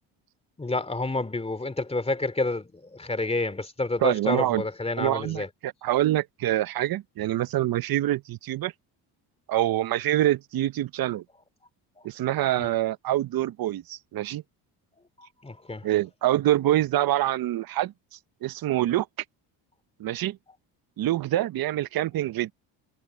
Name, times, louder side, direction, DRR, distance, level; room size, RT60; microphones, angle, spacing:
voice 1, 0.6-5.5 12.6-12.7 15.4-15.9, left 2 dB, 15° left, 2.6 m, -29 dB
voice 2, 4.0-4.6 5.0-8.7 9.5-11.2 12.0-14.4 15.8-17.9 18.4-19.1 20.0-20.4 21.0-22.5, right 14 dB, 50° right, 0.8 m, -25 dB
cardioid pair, 100°, 45 cm